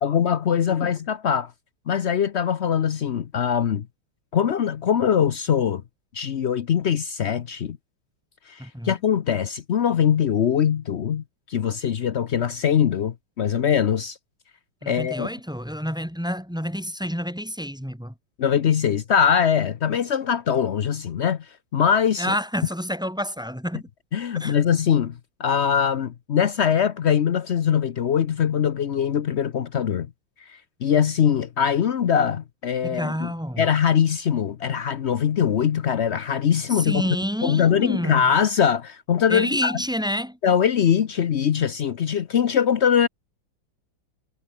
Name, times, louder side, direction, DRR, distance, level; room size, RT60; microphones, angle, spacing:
voice 1, 0.0-1.5 1.9-3.9 4.3-5.8 6.1-7.8 8.5-14.2 14.9-15.3 18.4-21.5 21.7-22.3 24.1-25.1 25.4-30.1 30.5-33.3 33.6-37.0 37.4-39.8 40.4-43.1, left 8 dB, 80° left, 0.6 m, -22 dB
voice 2, 8.6-8.9 14.8-18.1 22.2-23.9 24.4-24.5 32.8-33.7 36.7-38.3 39.3-40.4, equal, ahead, 2.3 m, -29 dB
omnidirectional pair, 2.3 m